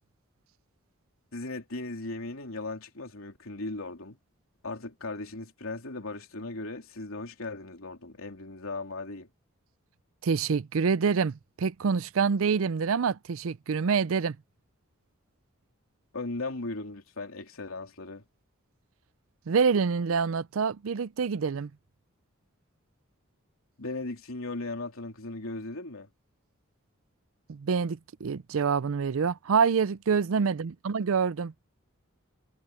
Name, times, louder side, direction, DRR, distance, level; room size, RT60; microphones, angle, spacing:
voice 1, 1.3-4.2 4.6-9.3 16.1-18.2 23.8-26.1, left 2 dB, 80° left, 3.2 m, -37 dB
voice 2, 10.2-14.4 19.5-21.7 27.5-31.5, right 5 dB, 75° right, 0.5 m, -26 dB
head